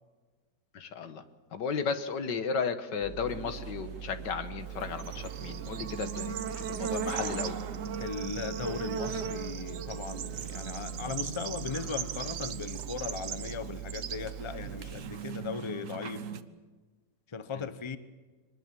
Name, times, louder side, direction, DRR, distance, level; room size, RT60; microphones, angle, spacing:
voice 1, 0.7-1.2 1.5-6.3 6.7-7.5, left 5 dB, 90° left, 10 dB, 2.1 m, -34 dB
sound 1, 3.0-14.9, right 9 dB, 50° left, 8.5 m, -43 dB
sound 2, 3.3-16.4, right 6 dB, 55° right, 1.3 m, -43 dB
Bird / Insect, 4.7-15.3, right 8 dB, 75° right, 1.5 m, -39 dB
voice 2, 8.0-16.3 17.3-18.0, left 5 dB, 25° left, 13 dB, 0.8 m, -38 dB
24.0 x 20.0 x 7.6 m, 1.4 s
omnidirectional pair, 1.8 m